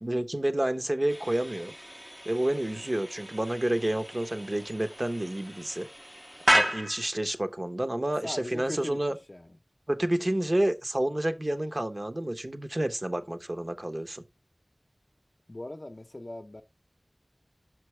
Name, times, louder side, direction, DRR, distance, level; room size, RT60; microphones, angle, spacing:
voice 1, 0.0-1.7 2.2-5.9 6.5-9.2 9.9-14.2, right 1 dB, 40° right, 0.9 m, -29 dB
sound 1, 1.1-7.2, equal, 5° right, 0.6 m, -32 dB
voice 2, 8.2-9.0 9.3-9.5 15.5-16.6, left 1 dB, 45° left, 0.7 m, -39 dB
6.0 x 5.7 x 3.2 m
wide cardioid pair, 50°, 0 cm